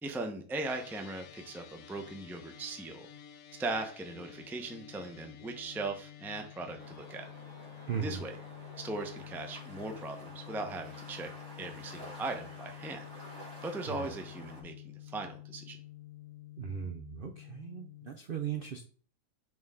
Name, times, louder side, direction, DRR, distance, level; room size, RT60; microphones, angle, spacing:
voice 1, 0.0-3.1 3.6-7.3 7.9-8.4 8.8-11.3 11.6-13.1 13.6-15.8, right 2 dB, 5° right, 5 dB, 0.4 m, -39 dB
sound 1, 0.6-18.1, left 13 dB, 65° left, 1.0 m, -50 dB
sound 2, 6.8-14.6, right 1 dB, 45° right, 2.8 m, -50 dB
voice 2, 7.9-8.2 13.9-14.1 16.6-18.8, right 7 dB, 60° right, 5 dB, 0.5 m, -38 dB
6.4 x 4.6 x 3.7 m, 0.43 s
omnidirectional pair, 1.7 m